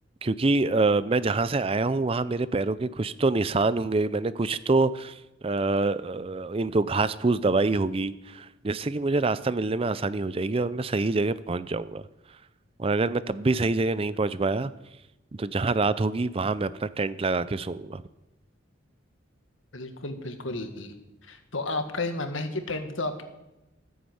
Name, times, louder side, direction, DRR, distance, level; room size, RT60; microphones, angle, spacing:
voice 1, 0.2-12.0 12.8-14.7 15.4-18.0, right 3 dB, 30° right, 15 dB, 0.5 m, -26 dB
voice 2, 19.7-20.9 21.2-23.2, left 2 dB, 80° left, 7 dB, 1.7 m, -32 dB
14.0 x 9.6 x 7.9 m, 0.95 s
head